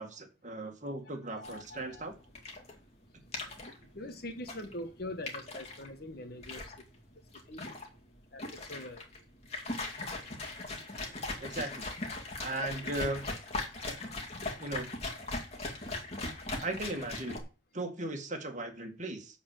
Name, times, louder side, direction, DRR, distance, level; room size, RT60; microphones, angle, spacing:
voice 1, 0.0-2.1 11.4-11.9 12.4-13.3 14.6-14.9 16.6-17.4 17.7-19.4, right 2 dB, 40° right, 4 dB, 2.0 m, -37 dB
voice 2, 1.3-2.1 3.2-3.3 3.9-6.7 7.5-7.6 8.3-9.0, left 1 dB, 50° left, 8 dB, 1.3 m, -43 dB
sound 1, 1.4-17.4, left 2 dB, 30° left, 2.3 m, -40 dB
11.0 x 4.4 x 7.5 m, 0.33 s
head